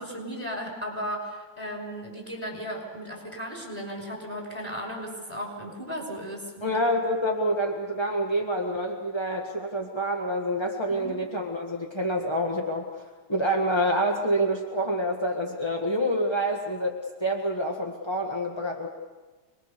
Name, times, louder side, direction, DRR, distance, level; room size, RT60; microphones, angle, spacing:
voice 1, 0.0-6.7 10.9-11.2, equal, 5° left, -1 dB, 5.4 m, -35 dB
voice 2, 6.6-12.9 13.3-18.9, equal, 20° left, 1 dB, 0.7 m, -27 dB
25.5 x 21.0 x 6.9 m, 1.3 s
omnidirectional pair, 3.4 m